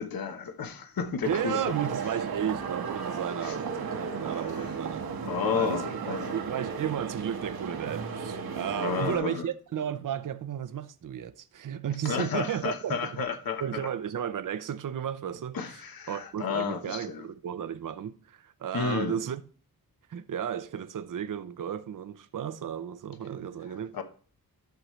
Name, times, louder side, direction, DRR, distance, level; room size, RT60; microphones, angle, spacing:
voice 1, 0.0-1.6 3.4-3.6 4.2-4.7 5.2-6.3 8.7-9.5 12.0-13.8 15.5-17.2 18.7-19.2 23.9-24.0, left 6 dB, 70° left, 1.2 m, -32 dB
voice 2, 1.2-5.1 5.5-13.1 13.6-19.4 20.1-24.0, right 9 dB, 60° right, 0.7 m, -34 dB
sound 1, 1.2-9.2, right 6 dB, 75° right, 1.6 m, -35 dB
11.5 x 6.5 x 3.2 m
wide cardioid pair, 100°, 37 cm